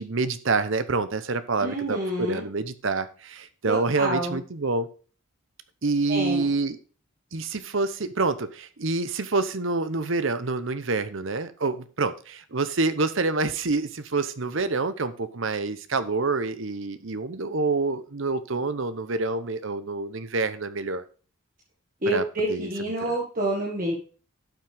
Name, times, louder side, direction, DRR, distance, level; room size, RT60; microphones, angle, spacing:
voice 1, 0.0-4.9 5.8-6.8 7.3-21.0 22.1-22.2 22.5-22.7, right 3 dB, 60° right, 12 dB, 0.8 m, -27 dB
voice 2, 1.6-2.5 3.7-4.4 6.1-6.5 22.0-23.9, right 1 dB, 40° right, -2 dB, 1.7 m, -28 dB
11.5 x 6.2 x 3.5 m, 0.38 s
head